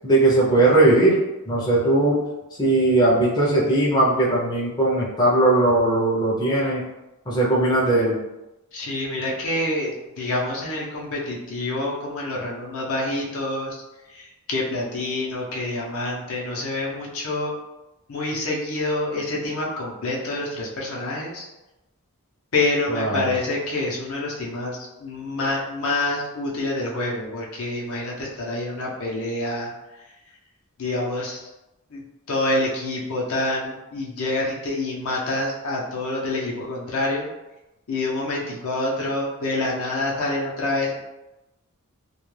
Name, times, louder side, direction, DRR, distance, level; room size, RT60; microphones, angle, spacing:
voice 1, 0.0-1.2 1.5-2.2 2.6-6.8 7.3-8.2 22.9-23.2, right 2 dB, 20° left, -6 dB, 0.5 m, -19 dB
voice 2, 8.7-13.7 14.1-17.5 18.1-21.4 22.5-29.7 30.8-31.5 31.9-37.3 37.9-41.0, left 2 dB, 65° left, -3 dB, 0.6 m, -27 dB
2.3 x 2.2 x 3.1 m, 1.0 s
head